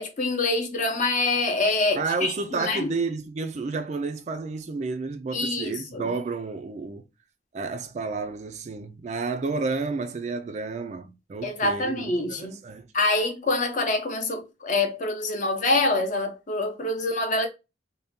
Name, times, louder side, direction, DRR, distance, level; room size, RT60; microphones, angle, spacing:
voice 1, 0.0-2.9 5.3-6.0 11.4-12.6 12.9-17.5, left 2 dB, 40° left, 0.6 m, -26 dB
voice 2, 2.0-7.0 7.5-12.9, right 4 dB, 35° right, 0.3 m, -31 dB
2.7 x 2.2 x 3.5 m
head